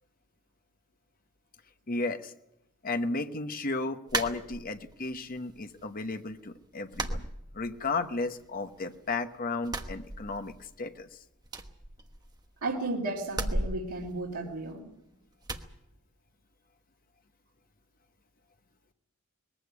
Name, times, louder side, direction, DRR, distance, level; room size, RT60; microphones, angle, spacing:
voice 1, 1.9-2.3 2.8-7.2 7.5-11.2, left 3 dB, 40° left, 8 dB, 1.1 m, -34 dB
sound 1, 4.1-5.0 5.4-6.1 6.3-6.5 6.9-8.1 8.3-9.2 9.6-10.7 11.0-11.1 11.4-12.6 13.3-14.9 15.4-15.7, right 2 dB, 20° right, 1.2 m, -36 dB
voice 2, 12.6-14.9, right 2 dB, 90° right, -3 dB, 2.6 m, -34 dB
20.5 x 15.5 x 9.8 m, 0.87 s
head